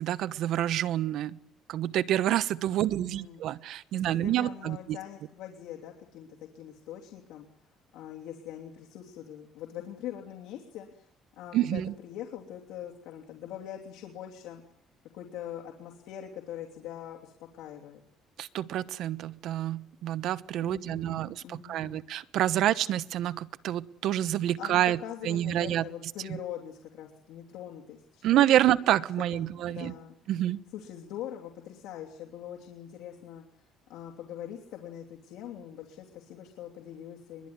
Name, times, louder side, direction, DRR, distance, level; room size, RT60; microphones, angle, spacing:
voice 1, 0.0-1.4 1.7-5.0 11.5-11.9 18.4-25.0 25.2-25.8 28.2-29.9 30.3-30.6, right 12 dB, 65° right, 14 dB, 1.0 m, -28 dB
voice 2, 2.7-3.4 3.9-7.5 7.9-11.1 11.4-14.6 15.1-18.0 20.6-22.0 24.4-28.6 29.3-30.1 30.7-33.4 33.9-37.5, left 10 dB, 85° left, 1 dB, 3.0 m, -43 dB
22.5 x 22.5 x 9.7 m, 0.72 s
cardioid pair, 150°, 0 cm